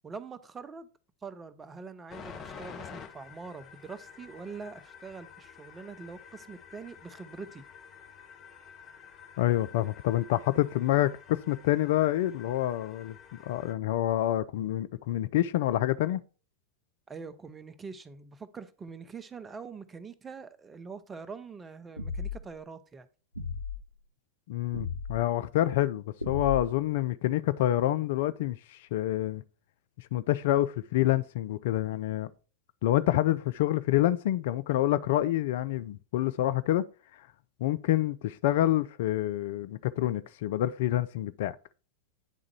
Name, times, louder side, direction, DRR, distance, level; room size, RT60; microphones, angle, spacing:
voice 1, 0.0-0.9 1.2-7.6 17.1-23.1, right 5 dB, 15° right, 0.6 m, -44 dB
sound 1, 2.1-13.7, left 7 dB, 30° left, 1.1 m, -49 dB
voice 2, 9.4-13.2 13.5-16.2 24.5-29.4 30.1-32.3 32.8-36.8 37.6-41.6, left 14 dB, 55° left, 0.3 m, -27 dB
sound 2, 22.0-22.6 23.3-23.8 24.7-25.2 26.2-26.9, left 4 dB, 85° right, 0.6 m, -35 dB
9.1 x 3.7 x 4.6 m
figure-of-eight pair, 90°, 0 cm